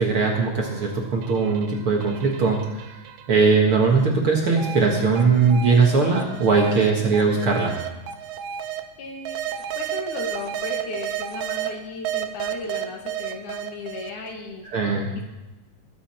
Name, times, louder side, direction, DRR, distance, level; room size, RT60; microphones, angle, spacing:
voice 1, 0.0-2.8 3.3-7.8 14.7-15.1, right 4 dB, 50° right, 0 dB, 1.8 m, -20 dB
sound 1, 0.6-3.4 3.9-8.8 9.2-11.7 12.0-14.3, right 10 dB, 90° right, 2.5 m, -32 dB
voice 2, 9.0-14.6 15.1-15.2, left 3 dB, 70° left, 2 dB, 2.9 m, -35 dB
20.5 x 8.4 x 4.3 m, 1.1 s
omnidirectional pair, 3.8 m